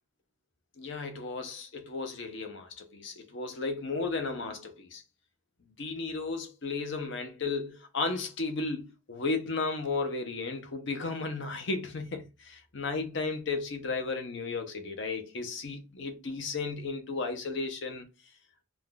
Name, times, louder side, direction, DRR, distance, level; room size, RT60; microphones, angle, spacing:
voice 1, 0.8-5.0 5.8-18.1, left 3 dB, 55° left, 0.7 m, -34 dB
2.5 x 2.3 x 3.7 m
head